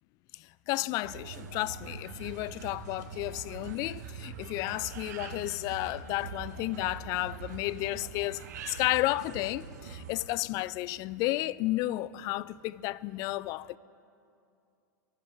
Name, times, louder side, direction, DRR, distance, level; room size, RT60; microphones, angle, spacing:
voice 1, 0.3-13.8, left 18 dB, 35° left, 0.3 m, -32 dB
sound 1, 1.0-10.1, right 6 dB, 55° right, 1.3 m, -43 dB
23.5 x 11.0 x 4.8 m
figure-of-eight pair, 90°, 10 cm